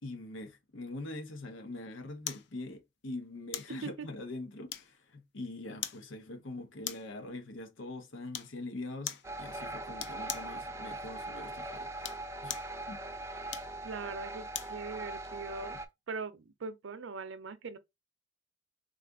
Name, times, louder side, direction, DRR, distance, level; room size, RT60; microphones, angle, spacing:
voice 1, 0.0-12.1 12.4-12.6 12.9-13.0, left 2 dB, 75° left, 0.9 m, -43 dB
sound 1, 2.3-2.5 3.5-3.8 4.7-5.1 5.8-6.1 6.8-7.2 8.3-8.6 9.1-9.3 10.0-10.5 11.9-12.7 13.5-14.8 15.2-15.4, left 10 dB, 60° left, 0.4 m, -40 dB
sound 2, 9.2-15.9, right 2 dB, 15° right, 0.4 m, -41 dB
voice 2, 13.8-15.8 16.1-17.8, right 4 dB, 70° right, 0.5 m, -41 dB
3.8 x 2.5 x 3.4 m
head